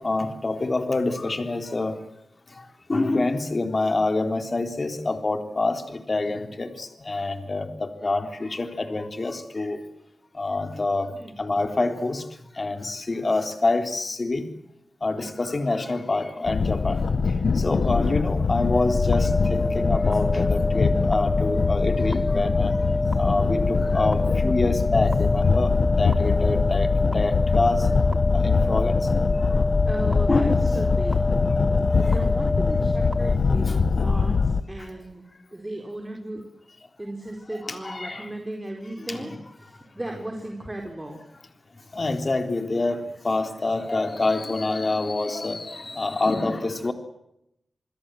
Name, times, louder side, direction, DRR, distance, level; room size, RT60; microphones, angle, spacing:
voice 1, 0.0-2.0 2.9-9.8 10.4-11.1 11.4-12.2 12.6-14.4 15.0-17.0 17.6-22.8 23.2-27.9 28.3-29.1 30.3-30.7 33.7-33.8 37.6-38.3 39.1-39.4 41.9-46.9, left 2 dB, 40° left, 7 dB, 3.6 m, -26 dB
sound 1, 16.5-34.6, left 4 dB, 70° left, 1.4 m, -23 dB
sound 2, 18.6-33.3, left 1 dB, 10° left, 1.8 m, -28 dB
voice 2, 29.9-31.2 32.0-35.2 35.5-36.4 37.0-39.3 39.6-41.2, right 1 dB, 15° right, 2 dB, 4.5 m, -36 dB
28.0 x 21.0 x 7.8 m, 0.81 s
cardioid pair, 65°, 0 cm